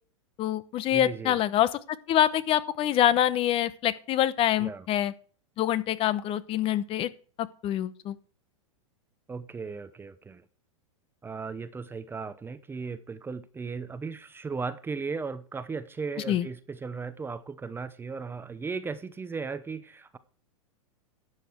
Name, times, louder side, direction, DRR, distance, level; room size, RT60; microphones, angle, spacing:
voice 1, 0.4-1.7 2.1-5.1 5.6-7.1 7.4-8.1 16.3-16.5, left 11 dB, 35° left, 0.9 m, -25 dB
voice 2, 0.9-1.4 4.6-4.9 9.3-10.4 11.2-20.2, right 4 dB, 15° right, 0.7 m, -36 dB
12.0 x 8.2 x 4.5 m
hypercardioid pair, 110°, 17 cm